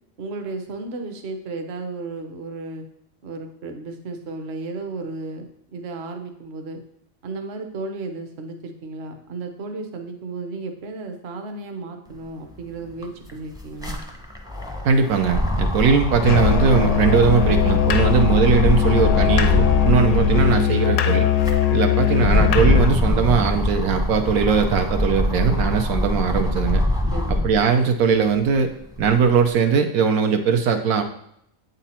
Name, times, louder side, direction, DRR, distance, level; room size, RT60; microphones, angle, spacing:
voice 1, 0.2-2.8 3.2-6.8 7.2-14.0 27.1-27.4, right 3 dB, 50° right, 5 dB, 1.0 m, -34 dB
sound 1, 12.5-12.6 12.9-20.7 21.2-27.7 28.2-29.3, left 1 dB, 5° right, 0.4 m, -23 dB
voice 2, 14.8-21.3 21.7-26.8 27.3-28.7 29.0-31.0, right 6 dB, 80° right, 5 dB, 1.1 m, -20 dB
Musical instrument, 16.2-23.0, left 9 dB, 90° left, 1.1 m, -20 dB
8.2 x 4.1 x 4.3 m, 0.74 s
omnidirectional pair, 1.5 m